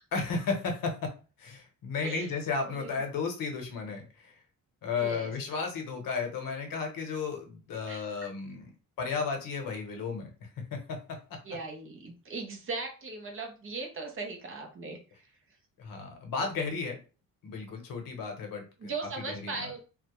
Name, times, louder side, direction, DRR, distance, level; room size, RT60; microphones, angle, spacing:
voice 1, 0.1-1.1 1.4-4.4 4.8-8.7 9.0-11.0 15.8-17.0 17.4-19.7, left 4 dB, 75° left, 3 dB, 0.8 m, -34 dB
voice 2, 2.6-3.0 5.0-5.3 7.9-8.1 11.4-15.3 18.8-19.8, right 3 dB, 40° right, 3 dB, 0.5 m, -38 dB
2.1 x 2.0 x 2.9 m, 0.35 s
wide cardioid pair, 165°, 34 cm